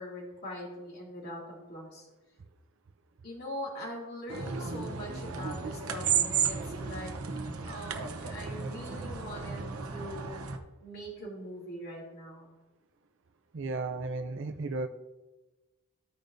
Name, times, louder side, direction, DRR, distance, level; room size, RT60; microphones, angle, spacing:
voice 1, 0.0-2.1 3.2-7.3 7.6-10.4 10.8-12.5, equal, 45° left, -4 dB, 2.7 m, -42 dB
sound 1, 4.3-10.6, right 6 dB, 75° right, 0.9 m, -33 dB
voice 2, 13.5-14.9, right 3 dB, 55° right, 7 dB, 0.5 m, -34 dB
15.0 x 5.1 x 2.6 m, 1.1 s
head